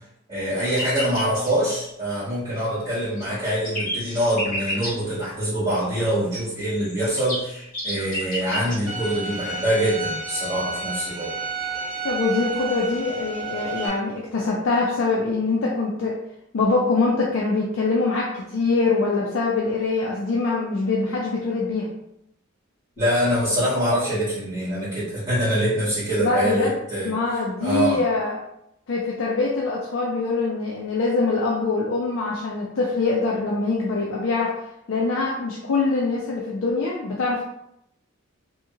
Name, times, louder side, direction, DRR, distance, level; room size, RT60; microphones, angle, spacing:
voice 1, 0.3-11.3 23.0-27.1 27.6-28.0, right 1 dB, 20° right, -15 dB, 1.3 m, -24 dB
sound 1, 0.7-1.5 2.8-4.9 6.7-8.8, left 1 dB, 40° left, 1.3 m, -30 dB
Bowed string instrument, 8.9-13.9, right 3 dB, 60° right, 0.9 m, -31 dB
voice 2, 12.0-16.1 16.5-21.9 26.2-26.8 27.0-28.4 28.9-34.5 34.9-37.4, left 3 dB, 60° left, -3 dB, 0.4 m, -23 dB
2.8 x 2.7 x 2.4 m, 0.81 s
head